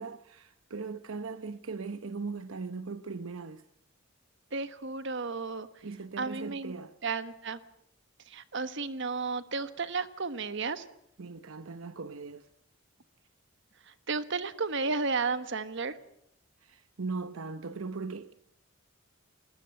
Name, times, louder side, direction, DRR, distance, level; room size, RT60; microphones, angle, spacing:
voice 1, 0.0-3.7 5.8-6.9 11.2-12.5 16.6-18.3, right 4 dB, 75° right, 0.8 m, -39 dB
voice 2, 4.5-5.7 6.2-6.7 7.0-7.6 8.3-10.8 13.9-15.9, right 4 dB, 60° right, 1.3 m, -33 dB
21.0 x 20.0 x 7.7 m
head